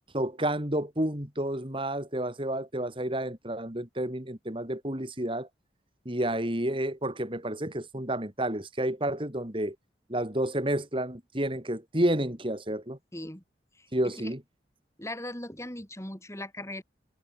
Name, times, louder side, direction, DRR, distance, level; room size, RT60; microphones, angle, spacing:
voice 1, 0.1-5.5 6.1-9.8 10.1-13.0 13.9-14.4, right 1 dB, 30° right, 3.7 m, -30 dB
voice 2, 13.1-13.4 13.8-13.9 14.2-14.3 15.0-16.8, left 1 dB, 15° left, 4.8 m, -39 dB
head